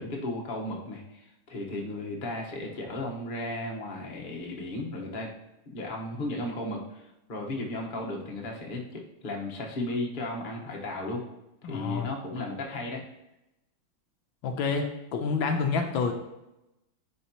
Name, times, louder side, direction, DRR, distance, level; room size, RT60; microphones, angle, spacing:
voice 1, 0.0-5.3 5.7-11.2 11.6-13.0, left 1 dB, 30° left, -1 dB, 1.0 m, -35 dB
voice 2, 11.6-12.1 14.4-16.1, left 5 dB, 75° left, 4 dB, 1.4 m, -28 dB
10.5 x 4.5 x 2.9 m, 0.91 s
omnidirectional pair, 2.3 m